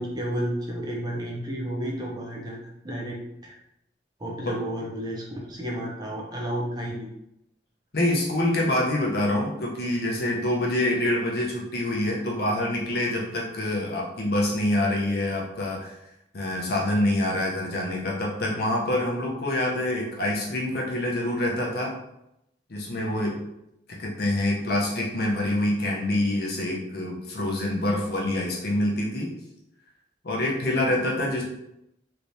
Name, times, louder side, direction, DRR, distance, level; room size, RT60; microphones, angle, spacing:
voice 1, 0.0-3.6 4.2-7.1, right 1 dB, 25° right, -2 dB, 0.6 m, -32 dB
voice 2, 7.9-15.9 16.3-21.9 22.7-23.4 24.0-29.3 30.2-31.4, left 1 dB, 60° left, -3 dB, 0.8 m, -26 dB
3.3 x 2.8 x 2.7 m, 0.83 s
head